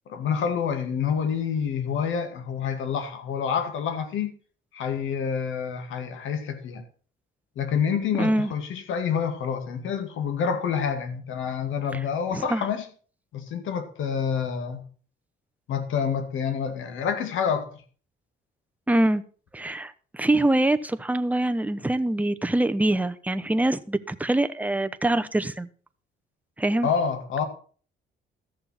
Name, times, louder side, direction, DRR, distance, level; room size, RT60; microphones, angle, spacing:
voice 1, 0.1-4.3 4.7-6.8 7.6-12.9 13.3-14.8 15.7-17.7 26.8-27.4, left 7 dB, 80° left, 2.1 m, -27 dB
voice 2, 8.2-8.5 12.3-12.7 18.9-19.2 19.5-25.7 26.6-26.9, right 1 dB, 5° right, 0.8 m, -24 dB
13.5 x 6.8 x 5.8 m
cardioid pair, 90°, 20 cm